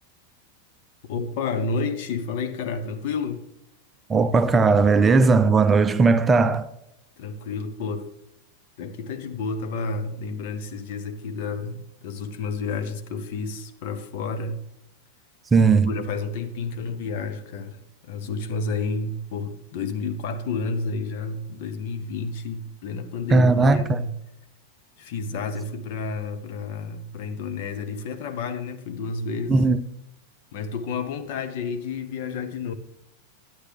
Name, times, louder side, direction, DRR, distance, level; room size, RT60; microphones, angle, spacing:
voice 1, 1.0-3.4 7.2-8.1 8.8-14.6 15.8-24.1 25.0-29.6 30.5-32.7, left 4 dB, 50° left, 1.0 m, -30 dB
voice 2, 4.1-6.7 15.5-15.9 23.3-24.0 29.5-29.8, right 4 dB, 15° right, 0.5 m, -18 dB
11.5 x 10.0 x 3.4 m
figure-of-eight pair, 90°, 0 cm